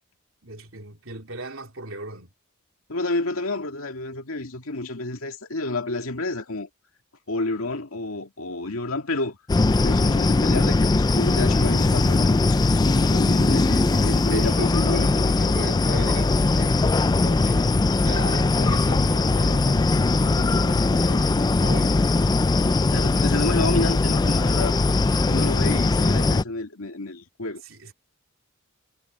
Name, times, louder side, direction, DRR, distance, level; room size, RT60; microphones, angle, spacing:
voice 1, 0.4-2.3 13.6-16.9 17.2-22.1 27.6-27.9, right 2 dB, 65° right, 4.0 m, -37 dB
voice 2, 2.9-6.7 7.3-9.4 9.8-15.1 22.9-24.7 25.3-27.6, left 2 dB, 75° left, 2.2 m, -30 dB
sound 1, 9.5-26.4, left 3 dB, 20° left, 0.3 m, -20 dB
head